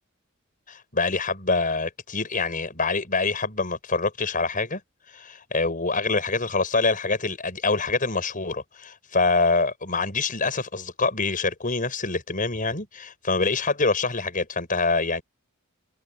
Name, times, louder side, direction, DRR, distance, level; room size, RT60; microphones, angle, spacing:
voice 1, 0.7-4.8 5.1-15.2, left 3 dB, 40° left, 6.2 m, -25 dB
head